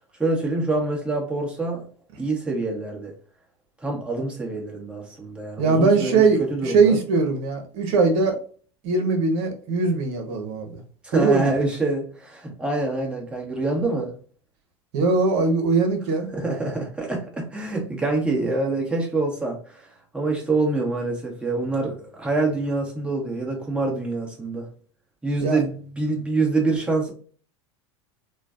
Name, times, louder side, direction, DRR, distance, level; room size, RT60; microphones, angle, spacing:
voice 1, 0.2-1.9 2.2-3.1 3.8-7.0 11.0-14.1 16.3-24.7 25.2-27.1, right 3 dB, 5° right, 1.2 m, -26 dB
voice 2, 5.6-8.4 8.8-10.8 11.1-11.5 14.9-16.3 25.4-25.6, right 4 dB, 60° right, 0.9 m, -21 dB
3.2 x 2.2 x 2.5 m
hypercardioid pair, 90°, 15 cm